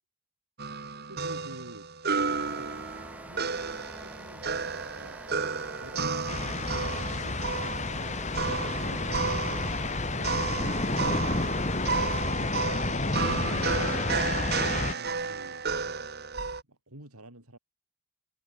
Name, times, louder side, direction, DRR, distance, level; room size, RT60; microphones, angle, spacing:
sound 1, 0.6-16.6, right 4 dB, 45° right, 2.1 m, -32 dB
voice 1, 1.1-1.9 2.2-5.2 5.8-8.3 8.6-9.6 11.9-12.7 14.8-15.7 16.7-17.6, right 1 dB, 80° right, 6.5 m, -49 dB
sound 2, 2.2-12.2, right 1 dB, 5° right, 7.0 m, -46 dB
sound 3, 6.3-14.9, left 2 dB, 30° left, 1.5 m, -30 dB
head